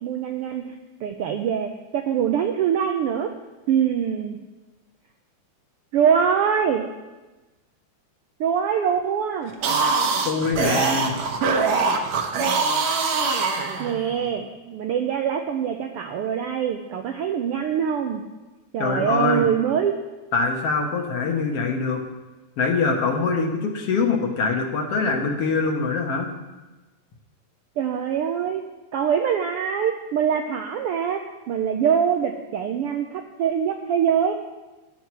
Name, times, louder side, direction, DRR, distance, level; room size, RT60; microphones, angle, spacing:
voice 1, 0.0-0.7 1.0-3.3 3.7-4.4 5.9-6.8 8.4-9.5 13.8-18.2 18.7-20.0 27.8-28.6 28.9-34.3, right 8 dB, 85° right, 4 dB, 1.3 m, -24 dB
sound 1, 9.5-14.2, right 4 dB, 70° right, 2.3 m, -23 dB
voice 2, 10.3-11.2 18.8-19.4 20.3-22.0 22.6-26.3, left 4 dB, 60° left, 2 dB, 2.1 m, -23 dB
13.0 x 10.0 x 4.6 m, 1.1 s
omnidirectional pair, 3.3 m